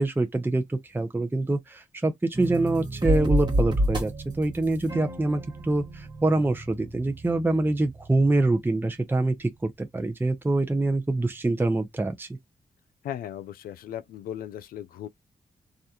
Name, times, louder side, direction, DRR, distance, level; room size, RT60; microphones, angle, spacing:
voice 1, 0.0-12.3, right 2 dB, 15° right, 0.6 m, -25 dB
sound 1, 2.3-9.1, equal, 30° right, 1.2 m, -30 dB
voice 2, 13.0-15.1, left 10 dB, 85° left, 0.4 m, -37 dB
2.4 x 2.2 x 2.7 m
supercardioid pair, 45°, 15 cm